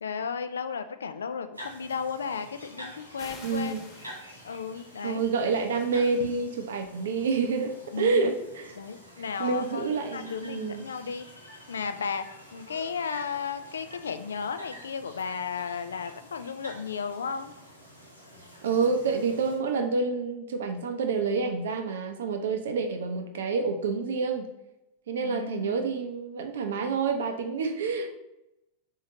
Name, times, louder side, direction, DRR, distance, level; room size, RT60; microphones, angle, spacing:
voice 1, 0.0-3.9 4.4-5.2 6.2-6.3 7.9-8.2 8.8-11.3 11.7-12.3 12.5-17.5 25.2-25.9, left 6 dB, 70° left, 10 dB, 0.3 m, -34 dB
sound 1, 1.5-19.6, equal, 90° right, 1.1 m, -48 dB
sound 2, 3.2-5.2, left 3 dB, 30° left, 1.1 m, -48 dB
voice 2, 3.4-3.8 5.0-8.8 9.4-10.9 18.6-24.5 25.1-28.1, right 4 dB, 60° right, 6 dB, 0.6 m, -28 dB
4.4 x 3.7 x 2.8 m, 0.91 s
figure-of-eight pair, 90°, 0 cm